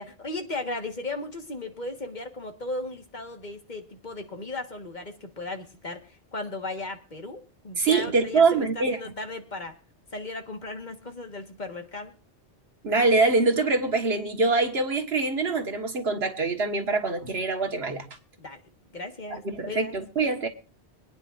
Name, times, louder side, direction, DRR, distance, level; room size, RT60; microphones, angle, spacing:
voice 1, 0.0-9.7 10.1-12.1 18.4-18.6 18.9-19.9, left 2 dB, 45° left, 1.6 m, -36 dB
voice 2, 7.8-9.0 12.8-18.1 19.3-20.5, right 3 dB, 70° right, 1.9 m, -24 dB
25.5 x 9.8 x 2.5 m
omnidirectional pair, 1.1 m